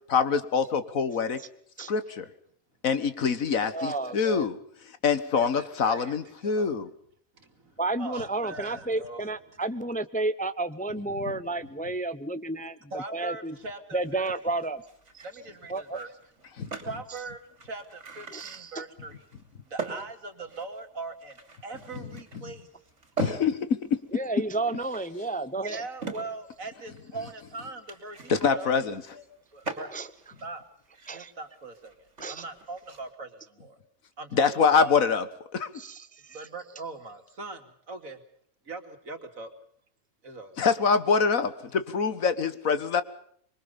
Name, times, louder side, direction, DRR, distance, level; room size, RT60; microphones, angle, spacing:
voice 1, 0.1-1.4 1.9-2.3 2.8-4.6 5.0-6.9 16.6-16.7 23.2-24.0 28.3-29.0 34.3-35.2 35.5-35.7 40.6-43.0, left 5 dB, 75° left, 12 dB, 1.9 m, -25 dB
voice 2, 3.7-4.5 7.8-13.6 13.9-14.8 15.7-16.0 18.3-18.8 24.1-25.8 29.9-30.1 31.1-31.3 32.2-32.4 35.7-36.4, right 2 dB, 10° left, 12 dB, 0.7 m, -31 dB
voice 3, 5.4-6.1 6.4-6.8 7.4-9.3 12.9-14.2 15.2-16.1 16.8-19.2 19.7-22.7 25.5-28.7 29.1-29.2 29.5-30.0 30.4-30.6 31.1-33.3 33.6-33.8 34.2-34.9 36.3-38.2 38.7-39.5 40.2-40.7, right 3 dB, 75° right, 6 dB, 2.9 m, -41 dB
sound 1, 14.0-33.1, right 4 dB, 55° right, 3.6 m, -43 dB
26.0 x 23.0 x 5.5 m, 0.63 s
omnidirectional pair, 1.4 m